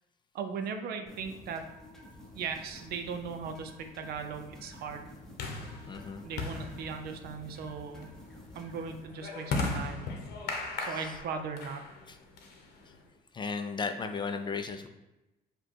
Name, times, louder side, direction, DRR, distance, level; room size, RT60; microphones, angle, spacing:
voice 1, 0.3-1.6 2.3-5.1 6.2-8.1 8.5-10.1 10.4-11.8, right 5 dB, 65° right, 6 dB, 0.5 m, -38 dB
sound 1, 1.1-9.1, left 1 dB, 5° left, 0.8 m, -51 dB
sound 2, 2.7-13.1, left 3 dB, 75° left, 0.8 m, -39 dB
voice 2, 5.9-6.2 13.3-14.9, left 5 dB, 30° left, 6 dB, 0.4 m, -34 dB
5.1 x 2.2 x 4.4 m, 0.98 s
cardioid pair, 110°, 17 cm